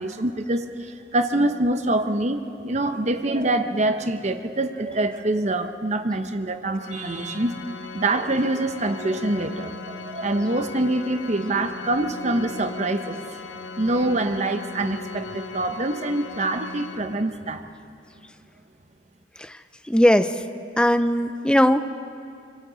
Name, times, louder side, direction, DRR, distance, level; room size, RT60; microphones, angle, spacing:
voice 1, 0.0-7.5 7.9-13.2 13.8-17.6, right 2 dB, 40° right, 8 dB, 0.9 m, -25 dB
Organ, 6.8-17.6, left 4 dB, 80° left, 0.8 m, -38 dB
voice 2, 19.9-20.3 20.8-21.9, equal, 5° left, 10 dB, 0.5 m, -18 dB
25.5 x 25.0 x 4.0 m, 2.4 s
head